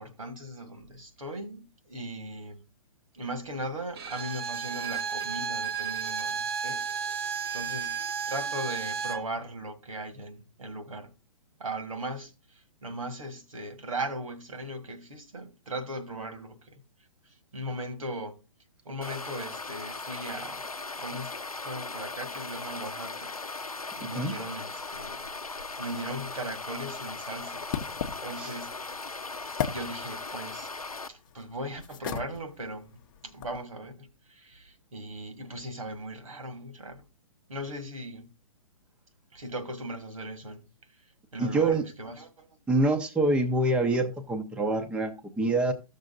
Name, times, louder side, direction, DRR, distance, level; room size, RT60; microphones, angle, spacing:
voice 1, 0.0-2.6 3.1-6.8 7.5-8.0 8.3-11.1 11.6-16.8 17.5-18.4 18.9-20.6 21.0-21.3 21.6-27.7 28.2-28.7 29.7-30.7 31.1-37.1 37.5-38.3 39.3-40.6 41.3-42.5, right 1 dB, 70° right, 1.8 m, -38 dB
Bowed string instrument, 3.9-9.3, right 7 dB, 45° right, 0.9 m, -33 dB
sound 1, 19.0-31.1, left 3 dB, 90° left, 0.7 m, -38 dB
sound 2, 26.4-33.6, left 9 dB, 35° left, 0.7 m, -40 dB
voice 2, 41.4-41.8 42.7-45.7, right 2 dB, 5° right, 0.6 m, -26 dB
14.0 x 6.7 x 2.5 m
figure-of-eight pair, 125°, 18 cm